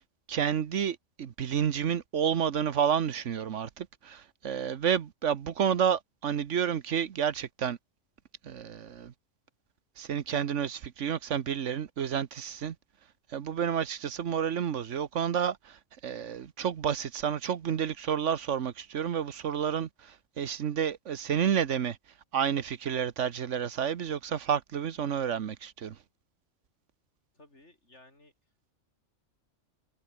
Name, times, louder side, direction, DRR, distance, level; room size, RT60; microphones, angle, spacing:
voice 1, 0.3-7.8 8.4-9.1 10.0-12.8 13.3-22.0 22.3-26.0, right 8 dB, 70° right, 1.3 m, -30 dB
voice 2, 27.3-28.3, left 2 dB, 60° left, 6.3 m, -57 dB
omnidirectional pair, 1.3 m